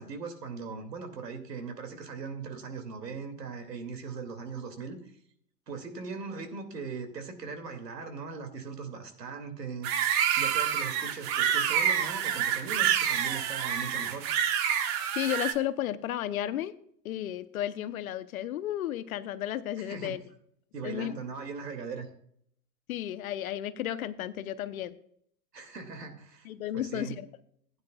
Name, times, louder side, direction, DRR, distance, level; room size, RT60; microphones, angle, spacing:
voice 1, 0.0-5.1 5.7-9.9 10.4-14.3 19.8-20.2 20.7-22.1 25.5-26.5 26.7-27.2, right 5 dB, 75° right, 6 dB, 2.4 m, -39 dB
sound 1, 9.8-15.5, right 9 dB, 35° right, 1.2 m, -27 dB
voice 2, 15.1-16.7 17.0-20.2 20.8-21.1 22.9-24.9 26.4-27.3, left 12 dB, 60° left, 14 dB, 0.9 m, -33 dB
16.0 x 9.6 x 2.3 m, 0.66 s
figure-of-eight pair, 105°, 49 cm